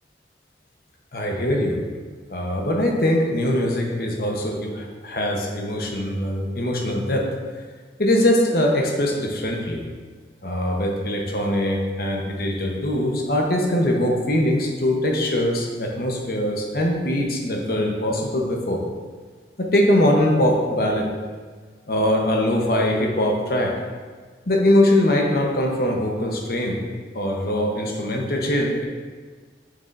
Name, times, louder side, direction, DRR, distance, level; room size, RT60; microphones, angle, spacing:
voice 1, 1.1-1.8 2.3-7.2 8.0-9.8 10.4-18.8 19.6-21.1 21.9-23.7 24.5-26.8 27.1-28.8, left 1 dB, 55° left, 0 dB, 1.0 m, -22 dB
7.0 x 6.7 x 2.6 m, 1.5 s
head